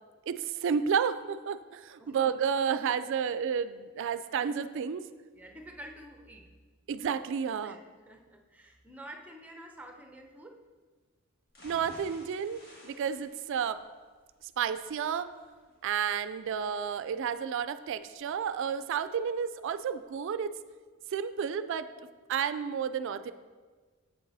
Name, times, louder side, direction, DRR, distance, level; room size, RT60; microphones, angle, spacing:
voice 1, 0.3-5.1 6.9-7.8 11.6-13.8 14.6-15.3 15.8-20.5 21.1-21.9 22.3-23.3, right 7 dB, 60° right, 12 dB, 0.3 m, -31 dB
voice 2, 5.3-6.5 7.6-10.6, right 1 dB, 5° right, 3 dB, 0.7 m, -49 dB
sound 1, 11.5-19.5 19.9-20.0 20.3-20.4, equal, 50° left, 1.5 m, -57 dB
7.7 x 6.6 x 4.0 m, 1.4 s
head